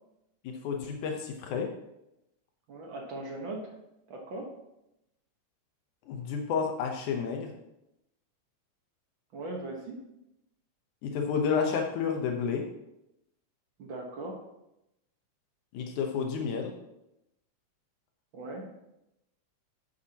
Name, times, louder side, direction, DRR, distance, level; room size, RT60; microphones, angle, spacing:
voice 1, 0.4-1.7 6.1-7.5 11.0-12.6 15.7-16.7, left 6 dB, 85° left, 3 dB, 2.4 m, -30 dB
voice 2, 2.7-3.7 4.1-4.5 9.3-10.0 13.8-14.4 18.3-18.7, right 2 dB, 50° right, 1 dB, 1.7 m, -39 dB
11.0 x 8.5 x 2.9 m, 0.86 s
omnidirectional pair, 3.4 m